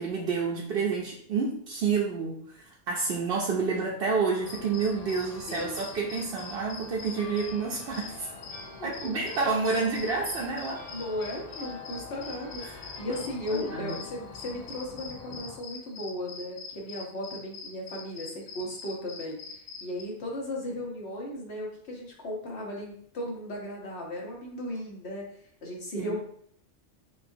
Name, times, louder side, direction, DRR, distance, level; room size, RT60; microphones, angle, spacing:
voice 1, 0.0-8.3 8.8-10.8 12.6-12.8 13.1-13.2 13.5-14.0 26.0-26.2, right 4 dB, 60° right, -3 dB, 0.8 m, -29 dB
sound 1, 4.4-15.6, left 3 dB, 45° left, 0.6 m, -45 dB
sound 2, 4.5-20.0, left 5 dB, 85° left, 1.1 m, -44 dB
voice 2, 5.5-6.1 8.8-9.4 10.9-12.6 13.0-19.4 19.8-25.2 25.6-26.2, left 1 dB, 65° left, -2 dB, 1.4 m, -36 dB
6.4 x 2.4 x 2.7 m, 0.64 s
omnidirectional pair, 1.2 m